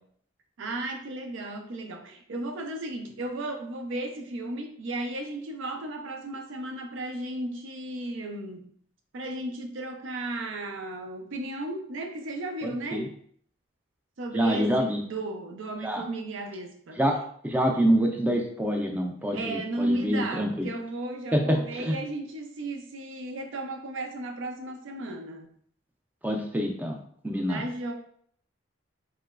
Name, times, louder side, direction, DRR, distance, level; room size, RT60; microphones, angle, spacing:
voice 1, 0.6-8.7 9.1-13.1 14.2-17.0 19.3-25.5 27.5-27.9, right 1 dB, 75° right, 4 dB, 0.5 m, -34 dB
voice 2, 12.6-13.1 14.3-15.0 15.8-16.0 17.0-17.1 17.4-20.7 21.3-22.0 26.2-27.0 27.2-27.6, equal, 10° right, 2 dB, 0.4 m, -26 dB
3.1 x 2.9 x 2.3 m, 0.62 s
head